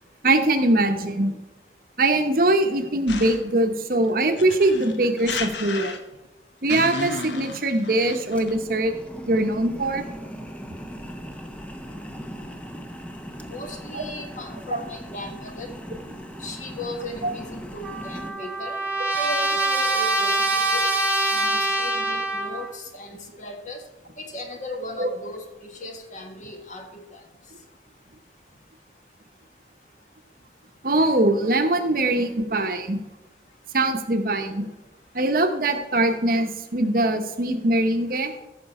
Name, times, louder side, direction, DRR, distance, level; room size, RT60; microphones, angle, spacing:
voice 1, 0.2-1.4 2.0-6.0 6.6-8.9 9.3-10.0 13.9-14.0 14.7-14.8 17.2-17.3 25.0-25.1 30.8-33.0 33.7-34.7 35.1-38.3, right 2 dB, 50° right, 6 dB, 0.9 m, -22 dB
sound 1, 3.1-3.6 4.4-6.3 6.7-8.6, left 3 dB, 85° left, 1.0 m, -33 dB
sound 2, 8.3-18.3, equal, 5° left, 0.7 m, -38 dB
voice 2, 13.5-15.7 16.4-18.8 19.1-20.8 21.3-23.8 24.2-27.2, left 1 dB, 45° left, 3 dB, 1.5 m, -37 dB
Trumpet, 17.8-22.7, right 2 dB, 10° right, 1.2 m, -24 dB
14.5 x 6.0 x 4.2 m, 1.1 s
head